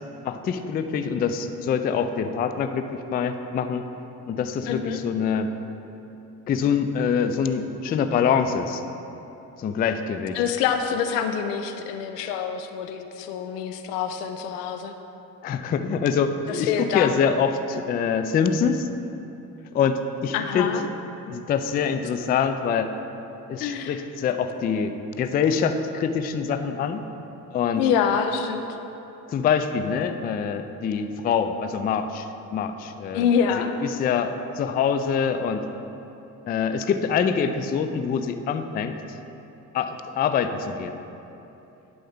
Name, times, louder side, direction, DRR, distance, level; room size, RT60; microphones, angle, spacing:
voice 1, 0.2-3.8 4.3-5.5 6.5-8.8 9.6-10.4 15.4-18.9 19.7-20.7 21.3-22.9 23.5-27.0 27.5-27.9 29.3-33.3 33.8-35.7 36.5-39.2 39.7-40.9, left 6 dB, 20° left, 9 dB, 0.3 m, -25 dB
voice 2, 4.7-5.0 10.3-14.9 16.5-17.1 20.3-20.9 23.6-24.0 27.8-28.6 33.1-33.7, left 7 dB, 75° left, 7 dB, 0.6 m, -26 dB
10.5 x 5.2 x 3.5 m, 2.9 s
figure-of-eight pair, 45°, 48 cm